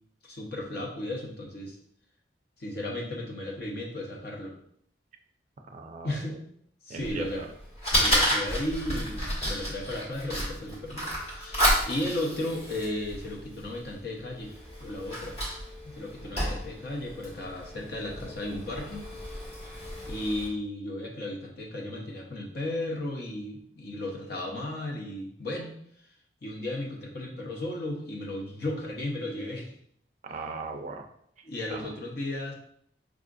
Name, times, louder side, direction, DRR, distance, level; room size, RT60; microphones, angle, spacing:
voice 1, 0.2-1.8 2.6-4.6 6.0-6.4 6.8-7.4 7.9-15.4 15.8-19.4 20.1-25.7 26.4-29.7 31.4-32.5, left 1 dB, 60° left, 0 dB, 0.8 m, -35 dB
voice 2, 5.7-6.2 6.9-7.5 30.3-31.1 31.7-31.9, right 3 dB, 45° right, 4 dB, 0.4 m, -38 dB
Fire, 7.0-20.5, equal, 35° left, 1.3 m, -31 dB
4.8 x 2.5 x 2.5 m, 0.68 s
head